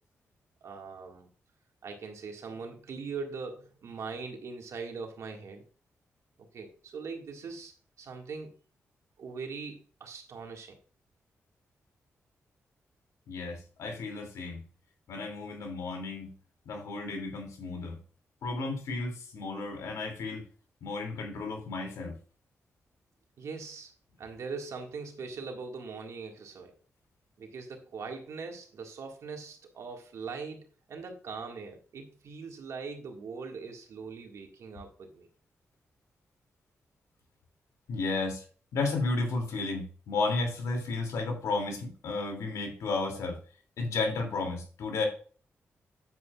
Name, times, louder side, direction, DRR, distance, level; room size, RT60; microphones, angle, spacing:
voice 1, 0.6-1.3 1.8-5.6 6.4-7.7 8.0-8.5 9.2-10.8 23.4-23.9 24.2-26.7 27.4-35.3, right 4 dB, 75° right, 3 dB, 1.9 m, -41 dB
voice 2, 13.3-14.6 15.1-16.3 16.6-18.0 18.4-20.4 20.8-22.2 37.9-38.4 38.7-43.4 43.8-45.1, left 3 dB, 90° left, 3 dB, 2.7 m, -33 dB
9.3 x 8.3 x 2.4 m, 0.39 s
cardioid pair, 60°, 5 cm